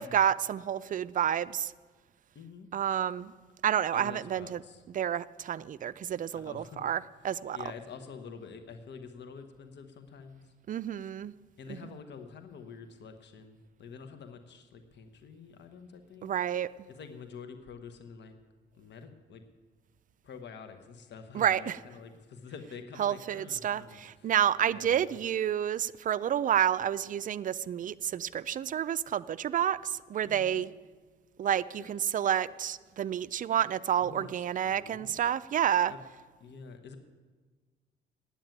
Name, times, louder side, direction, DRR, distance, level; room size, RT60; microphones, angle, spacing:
voice 1, 0.0-1.7 2.7-3.3 3.6-4.6 4.9-7.6 10.7-11.3 11.7-11.8 16.2-16.7 21.3-21.8 23.0-30.7 31.4-35.9, right 10 dB, 40° right, 17 dB, 0.4 m, -29 dB
voice 2, 2.3-2.7 3.9-4.8 6.3-6.9 7.5-10.4 11.6-16.3 16.9-18.3 18.7-19.4 20.2-24.3 24.6-25.1 30.2-30.6 31.8-31.9 34.0-35.2 35.9-36.0 36.4-37.0, left 5 dB, 60° left, 8 dB, 1.1 m, -47 dB
9.1 x 8.7 x 9.1 m, 1.4 s
cardioid pair, 90°, 20 cm